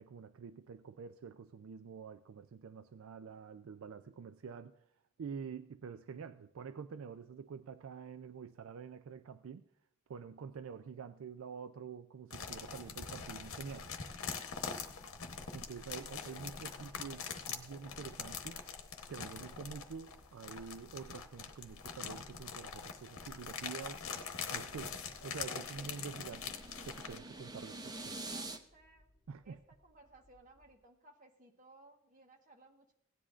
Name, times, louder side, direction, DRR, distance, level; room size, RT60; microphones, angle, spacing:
voice 1, 0.0-4.8 5.2-9.6 10.1-13.9 15.5-18.6 19.1-26.5 26.8-27.9 29.3-29.6, right 6 dB, 75° right, 11 dB, 0.4 m, -47 dB
sound 1, 12.3-27.2, left 6 dB, 85° left, 0.9 m, -44 dB
sound 2, 12.7-30.8, left 1 dB, 25° left, 4.4 m, -69 dB
voice 2, 14.8-15.2 27.9-29.1 29.4-32.9, right 2 dB, 40° right, 3 dB, 1.3 m, -61 dB
sound 3, 24.3-28.6, right 2 dB, 20° right, 0.6 m, -47 dB
17.0 x 10.0 x 2.5 m, 0.77 s
head